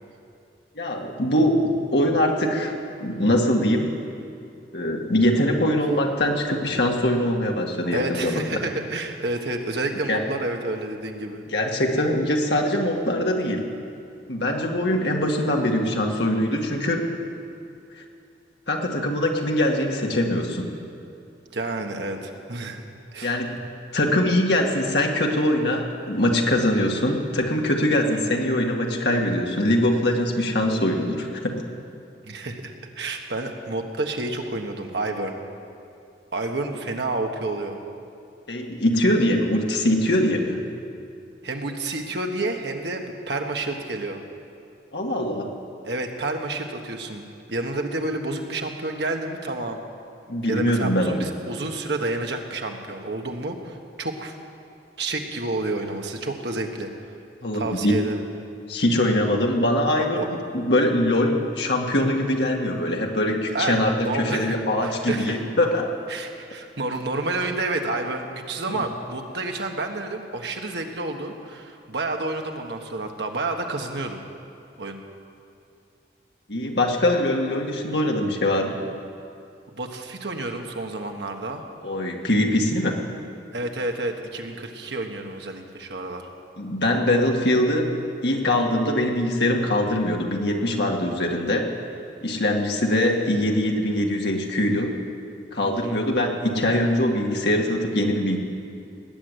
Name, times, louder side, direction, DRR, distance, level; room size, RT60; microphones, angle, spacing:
voice 1, 0.8-2.7 3.0-3.9 4.7-8.5 10.1-10.2 11.5-13.6 14.3-17.0 18.7-20.7 23.2-23.6 23.9-31.6 38.5-40.6 44.9-45.5 50.3-51.2 57.4-58.0 58.7-65.9 76.5-78.8 81.8-83.0 86.6-87.9 88.2-91.6 92.2-94.9 95.5-98.4, left 1 dB, 70° left, 1 dB, 2.0 m, -22 dB
voice 2, 7.9-11.4 21.5-22.8 23.1-23.4 32.2-35.4 36.3-37.8 41.4-44.2 45.8-49.8 50.5-54.3 55.0-56.9 57.5-58.2 59.9-60.3 63.5-65.4 66.1-74.2 74.8-75.0 79.7-81.6 83.5-86.3 95.6-96.0, right 2 dB, 75° right, 3 dB, 1.5 m, -30 dB
19.5 x 9.1 x 8.1 m, 2.6 s
head